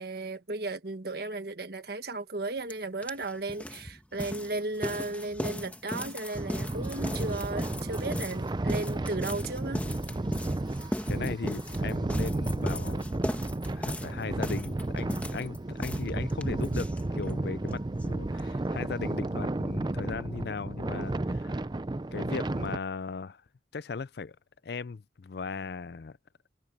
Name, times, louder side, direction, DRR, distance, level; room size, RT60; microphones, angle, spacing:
voice 1, 0.0-9.8, right 2 dB, 55° right, 1.5 m, -35 dB
sound 1, 2.7-2.8 3.0-17.4 17.7-17.8 18.0-18.1 18.4-18.5, left 1 dB, 10° left, 1.2 m, -37 dB
sound 2, 6.3-22.8, right 2 dB, 25° right, 0.4 m, -32 dB
voice 2, 11.1-13.3 13.7-21.7 22.1-23.4 23.7-24.4 24.6-26.2, left 4 dB, 55° left, 0.4 m, -37 dB
head